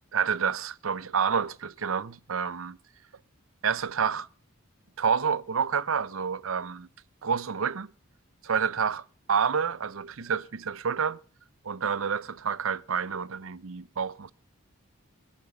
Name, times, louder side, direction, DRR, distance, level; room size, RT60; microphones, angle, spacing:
voice 1, 0.1-2.8 3.6-4.3 5.0-6.9 7.2-7.9 8.4-9.0 9.3-11.2 11.6-14.3, right 6 dB, 70° right, 0.6 m, -28 dB
21.5 x 7.4 x 6.9 m
head